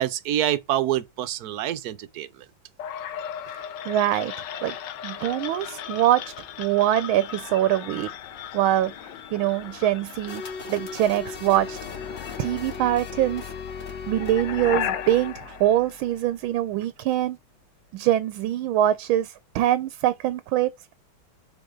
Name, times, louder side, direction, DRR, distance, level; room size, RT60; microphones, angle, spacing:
voice 1, 0.0-2.3, right 12 dB, 65° right, 1.0 m, -26 dB
sound 1, 2.8-16.7, left 10 dB, 70° left, 1.3 m, -36 dB
voice 2, 3.5-4.3 4.6-4.7 5.0-6.2 6.6-8.1 8.5-8.9 9.3-10.4 10.7-11.8 12.4-13.4 14.1-17.4 17.9-20.7, right 13 dB, 85° right, 1.4 m, -23 dB
sound 2, 10.3-15.6, left 4 dB, 35° left, 1.5 m, -38 dB
6.9 x 4.2 x 3.7 m
omnidirectional pair, 2.2 m